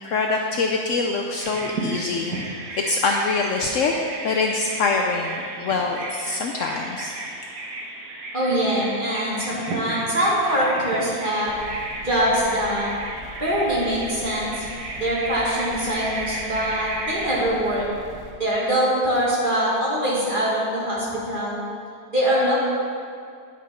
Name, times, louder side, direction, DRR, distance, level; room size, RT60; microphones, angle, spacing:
voice 1, 0.0-7.1, left 3 dB, 65° left, 1 dB, 0.8 m, -24 dB
Bird vocalization bird call bird song, 1.4-17.5, right 2 dB, 85° right, 1.7 m, -34 dB
voice 2, 8.3-11.6 12.0-12.9 13.4-14.6 15.0-17.9 18.4-21.6 22.1-22.6, equal, 35° right, -7 dB, 2.1 m, -23 dB
sound 1, 11.4-18.3, left 1 dB, 10° right, 1.3 m, -42 dB
10.0 x 6.1 x 4.2 m, 2.2 s
omnidirectional pair, 1.6 m